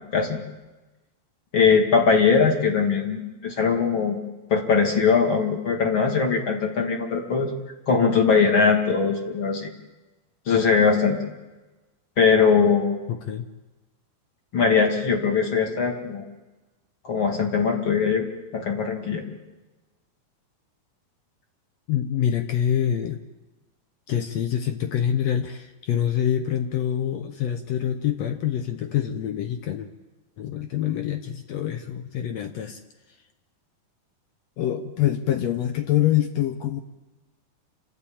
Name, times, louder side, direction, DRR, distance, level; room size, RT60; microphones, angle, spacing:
voice 1, 1.5-4.2 4.5-7.5 7.9-9.7 10.5-11.2 12.2-13.0 14.5-16.3 17.0-18.3 18.5-19.2, left 5 dB, 40° left, 2 dB, 2.5 m, -21 dB
voice 2, 13.1-13.5 21.9-23.2 24.1-29.9 30.4-32.8 34.6-36.8, left 10 dB, 75° left, 7 dB, 1.6 m, -25 dB
28.0 x 13.0 x 8.7 m, 1.1 s
omnidirectional pair, 4.2 m